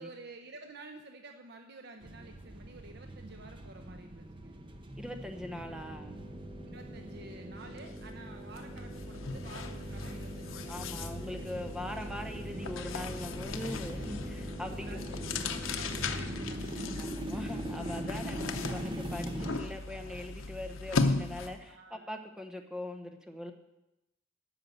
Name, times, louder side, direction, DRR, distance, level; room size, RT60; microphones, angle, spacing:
voice 1, 0.0-4.6 6.7-11.1 12.2-12.3 14.6-17.2 18.4-18.5 21.7-22.1, right 2 dB, 55° right, 5 dB, 0.8 m, -50 dB
sound 1, 2.0-19.6, right 1 dB, 25° right, 0.9 m, -42 dB
voice 2, 5.0-6.2 10.7-15.2 17.0-23.5, left 1 dB, 5° right, 5 dB, 1.0 m, -41 dB
sound 2, 5.2-16.3, right 1 dB, 20° left, 5.1 m, -46 dB
sound 3, 7.8-8.0 8.3-21.7, left 3 dB, 85° left, 0.8 m, -37 dB
13.0 x 5.7 x 7.9 m, 0.93 s
head